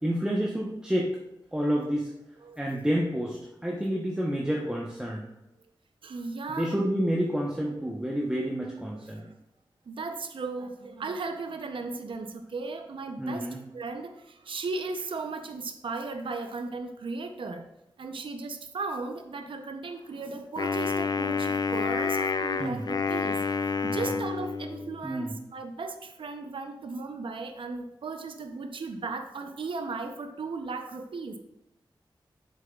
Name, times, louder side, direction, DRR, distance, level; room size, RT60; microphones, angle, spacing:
voice 1, 0.0-1.1 1.5-2.1 2.6-5.2 6.5-9.3 13.2-13.6 22.6-22.8 23.8-24.1 25.0-25.3, equal, 10° right, -3 dB, 0.9 m, -29 dB
voice 2, 6.0-6.7 8.9-9.3 9.9-17.7 18.0-23.4 23.8-31.4, right 3 dB, 80° right, 6 dB, 0.6 m, -36 dB
Wind instrument woodwind instrument, 20.6-25.0, left 5 dB, 50° left, 0.4 m, -29 dB
7.6 x 7.0 x 2.3 m, 0.90 s
wide cardioid pair, 85°, 9 cm